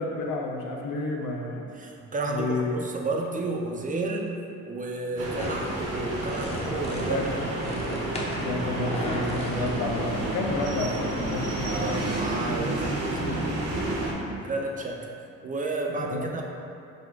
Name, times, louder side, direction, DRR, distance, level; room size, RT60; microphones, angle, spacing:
voice 1, 0.0-1.7 2.3-2.8 7.1-7.4 8.4-12.2 13.2-13.5 15.9-16.3, left 2 dB, 80° left, 0 dB, 0.6 m, -30 dB
voice 2, 1.7-4.4 4.7-7.2 9.5-9.7 11.7-13.3 14.4-15.1 15.4-16.4, right 2 dB, 30° right, 0 dB, 0.4 m, -31 dB
sound 1, 5.2-14.1, right 2 dB, 55° right, 0.8 m, -30 dB
sound 2, 5.3-10.4, left 1 dB, 20° left, 0.6 m, -37 dB
4.1 x 2.2 x 4.5 m, 2.5 s
cardioid pair, 90°, 30 cm